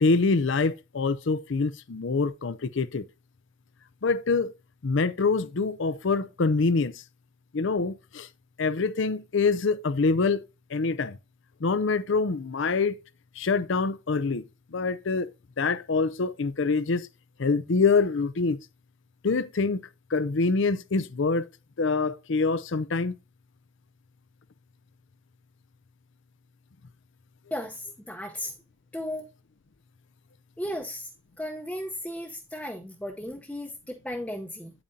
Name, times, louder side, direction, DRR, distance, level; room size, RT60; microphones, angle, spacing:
voice 1, 0.0-3.0 4.0-4.5 4.8-6.9 7.5-8.3 8.6-11.2 11.6-13.0 13.4-14.4 14.7-15.3 15.6-17.1 17.4-18.6 19.2-19.8 20.1-21.5 21.8-23.1, left 4 dB, 60° left, 0.5 m, -25 dB
voice 2, 27.5-28.5 28.9-29.3 30.6-31.1 31.4-34.7, left 1 dB, 5° left, 0.8 m, -35 dB
8.9 x 8.8 x 2.7 m
head